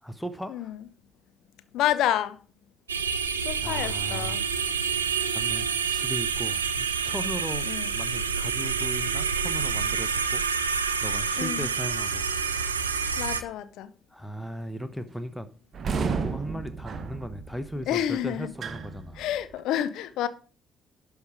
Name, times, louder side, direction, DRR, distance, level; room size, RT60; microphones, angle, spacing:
voice 1, 0.0-0.7 3.6-4.4 5.3-7.7 7.9-13.0 14.1-15.5 16.1-19.2, equal, 5° left, 0.9 m, -37 dB
voice 2, 1.7-2.4 3.4-4.4 7.6-7.9 11.4-11.7 13.2-13.9 17.9-18.5 19.2-20.3, left 11 dB, 60° left, 0.7 m, -28 dB
sound 1, 2.9-13.4, right 6 dB, 80° right, 0.5 m, -28 dB
sound 2, 15.7-19.6, right 5 dB, 45° right, 0.9 m, -33 dB
11.0 x 5.4 x 4.8 m
figure-of-eight pair, 45°, 0 cm